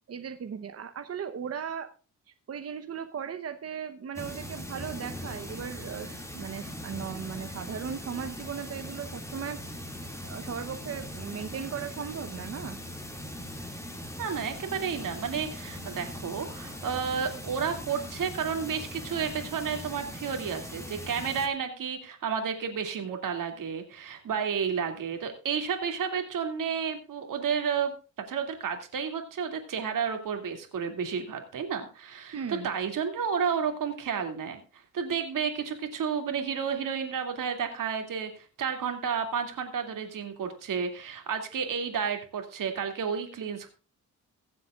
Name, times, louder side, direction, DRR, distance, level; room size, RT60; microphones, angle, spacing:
voice 1, 0.1-1.9 2.5-9.6 10.2-12.8 32.3-32.7, right 7 dB, 50° right, 7 dB, 1.0 m, -37 dB
sound 1, 4.1-21.5, left 1 dB, 10° left, 2.3 m, -40 dB
voice 2, 14.2-27.9 28.3-43.7, right 6 dB, 85° right, 5 dB, 2.6 m, -31 dB
22.5 x 7.8 x 2.4 m, 0.35 s
wide cardioid pair, 125°, 31 cm